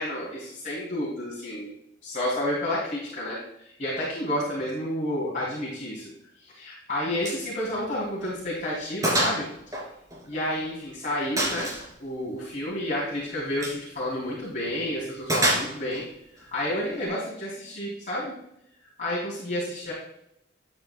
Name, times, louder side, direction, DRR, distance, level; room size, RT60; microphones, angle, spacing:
voice 1, 0.0-1.7 2.0-6.1 6.4-9.5 10.3-11.7 12.0-16.1 16.3-18.3 19.0-19.9, left 1 dB, 40° left, -6 dB, 2.6 m, -30 dB
Gunshot gunfire, 7.2-7.5 7.8-7.9 8.4-8.5 9.0-9.4 9.7-10.7 11.4-11.9 13.5-13.8 15.3-16.0, right 1 dB, 20° right, 2.5 m, -26 dB
11.0 x 7.8 x 2.2 m, 0.79 s
head